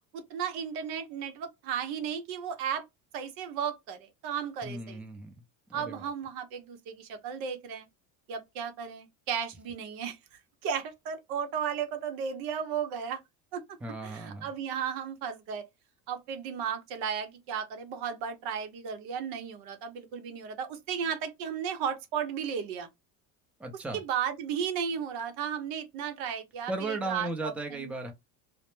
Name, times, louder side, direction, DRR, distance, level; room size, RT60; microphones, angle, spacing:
voice 1, 0.1-2.8 3.1-5.0 5.7-7.9 8.3-13.2 13.5-13.6 14.0-15.6 16.1-22.9 23.9-27.5 27.8-27.9, right 7 dB, 75° right, 0.8 m, -34 dB
voice 2, 4.6-5.4 5.7-6.1 13.8-14.5 23.6-24.0 26.7-28.1, right 2 dB, 5° right, 0.5 m, -36 dB
2.1 x 2.1 x 3.0 m
cardioid pair, 115°, 37 cm